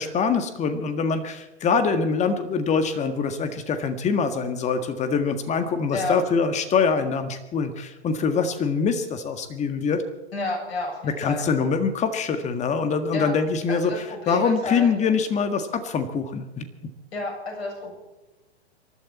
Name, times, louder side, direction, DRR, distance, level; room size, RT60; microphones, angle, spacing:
voice 1, 0.0-10.0 11.0-16.6, left 5 dB, 20° left, 9 dB, 1.7 m, -24 dB
voice 2, 10.3-11.5 13.1-13.3 13.7-14.9 17.1-17.9, left 2 dB, 60° left, 0 dB, 7.5 m, -30 dB
27.0 x 12.0 x 4.3 m, 1.1 s
figure-of-eight pair, 110°, 34 cm